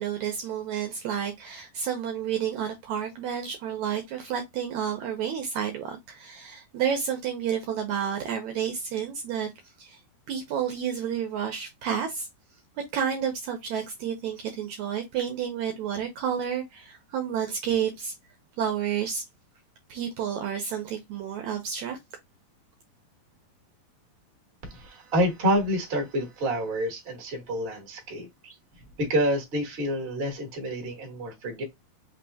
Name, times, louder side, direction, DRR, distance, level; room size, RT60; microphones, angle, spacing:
voice 1, 0.0-9.5 9.8-10.0 10.3-12.3 12.9-18.1 18.6-19.2 19.9-22.0, right 8 dB, 75° right, 1.8 m, -30 dB
voice 2, 24.6-28.5 29.0-31.6, equal, 35° right, 0.9 m, -28 dB
5.4 x 3.3 x 2.7 m
omnidirectional pair, 4.0 m